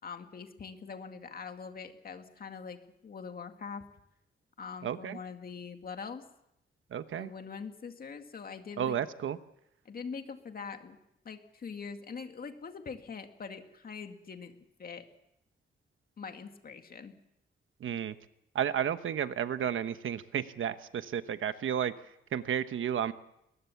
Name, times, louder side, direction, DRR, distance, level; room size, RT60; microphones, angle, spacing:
voice 1, 0.0-3.8 4.6-6.2 7.2-9.0 9.9-11.0 11.2-14.5 14.8-15.1 16.2-17.1, left 5 dB, 45° left, 6 dB, 2.1 m, -43 dB
voice 2, 4.8-5.2 6.9-7.3 8.8-9.4 17.8-18.1 18.5-21.9 22.3-23.1, right 9 dB, 75° right, 11 dB, 1.1 m, -32 dB
22.0 x 20.5 x 7.1 m, 0.81 s
wide cardioid pair, 155°, 21 cm